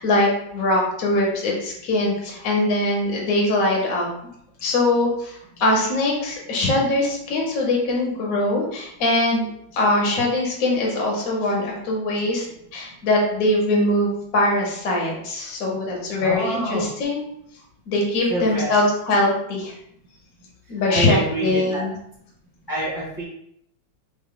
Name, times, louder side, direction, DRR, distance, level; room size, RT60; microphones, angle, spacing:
voice 1, 0.0-4.1 4.6-9.5 9.7-12.4 12.7-17.2 17.9-19.7 20.7-21.9, left 1 dB, 55° left, -1 dB, 1.1 m, -22 dB
voice 2, 16.2-16.9 18.3-18.8 20.9-21.8 22.7-23.2, right 1 dB, 30° left, -8 dB, 0.9 m, -26 dB
3.6 x 2.3 x 3.7 m, 0.73 s
omnidirectional pair, 2.2 m